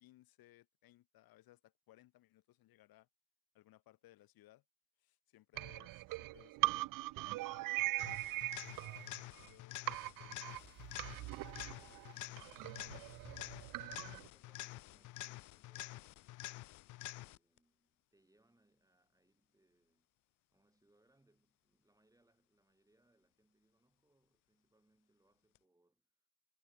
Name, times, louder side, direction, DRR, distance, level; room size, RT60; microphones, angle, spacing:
voice 1, 0.0-3.1 3.5-4.6 5.0-6.8 7.3-10.5, left 16 dB, 75° left, 6.3 m, -65 dB
sound 1, 5.5-9.5 9.9-14.3, right 19 dB, 65° right, 0.5 m, -41 dB
sound 2, 8.0-17.6 25.6-25.7, left 18 dB, 55° left, 0.5 m, -49 dB
sound 3, 8.2-9.1 10.3-13.7, right 5 dB, 30° right, 6.9 m, -70 dB
voice 2, 11.8-13.8 14.1-16.3 16.9-20.1 20.5-26.3, right 2 dB, 10° right, 7.8 m, -75 dB
cardioid pair, 115°, 36 cm